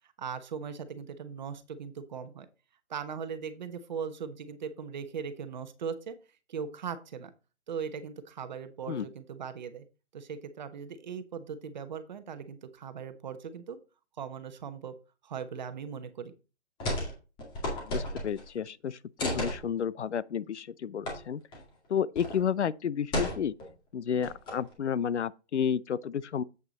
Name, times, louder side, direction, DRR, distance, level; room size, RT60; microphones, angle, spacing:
voice 1, 0.2-2.5 2.9-6.2 6.5-7.3 7.7-9.8 10.1-13.8 14.2-14.9 15.2-16.3, right 6 dB, 40° right, 1.1 m, -39 dB
sound 1, 16.8-17.1 17.4-18.5 19.2-19.6 21.1-21.2 21.5-21.6 22.2-22.4 23.1-23.7 24.2-24.7, left 1 dB, 15° left, 2.1 m, -33 dB
voice 2, 17.7-21.4 21.9-23.5 23.9-26.4, left 8 dB, 80° left, 0.7 m, -31 dB
8.1 x 6.1 x 3.9 m
hypercardioid pair, 155°, 34 cm